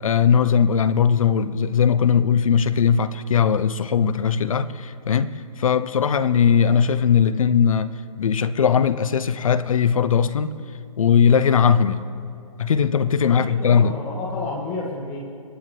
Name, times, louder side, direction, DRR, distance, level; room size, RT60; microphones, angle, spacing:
voice 1, 0.0-5.3 5.6-7.9 8.2-10.5 11.0-12.0 12.6-13.9, left 7 dB, 65° left, 0.7 m, -19 dB
voice 2, 13.3-15.2, left 3 dB, 30° left, 2.0 m, -31 dB
26.0 x 9.5 x 3.3 m
figure-of-eight pair, 130°, 19 cm